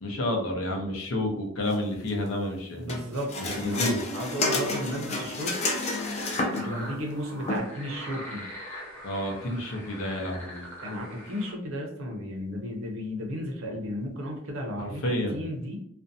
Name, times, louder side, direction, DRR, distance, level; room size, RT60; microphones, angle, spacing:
voice 1, 0.0-3.0 3.6-4.0 9.0-10.6 14.8-15.4, left 1 dB, 85° left, 1 dB, 0.6 m, -30 dB
voice 2, 2.8-3.8 4.1-5.6 6.5-8.5 10.8-15.0 15.3-15.8, equal, 75° right, 2 dB, 0.6 m, -34 dB
sound 1, 2.9-6.8 7.5-7.6, left 2 dB, 30° left, 0.4 m, -30 dB
sound 2, 5.8-11.5, equal, 10° left, 0.7 m, -42 dB
2.5 x 2.1 x 2.6 m, 0.70 s
head